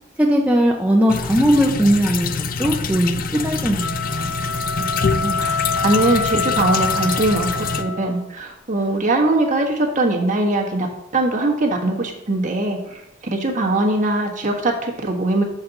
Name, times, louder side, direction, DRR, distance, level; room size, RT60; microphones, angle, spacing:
voice 1, 0.2-2.3 2.6-4.3, equal, 10° right, -2 dB, 0.7 m, -18 dB
sound 1, 1.1-7.8, left 5 dB, 50° left, 0.4 m, -26 dB
sound 2, 3.8-8.3, left 4 dB, 90° left, 0.7 m, -25 dB
voice 2, 5.1-10.9 11.1-15.4, right 2 dB, 45° right, 0 dB, 1.3 m, -21 dB
7.0 x 4.0 x 5.9 m, 0.85 s
head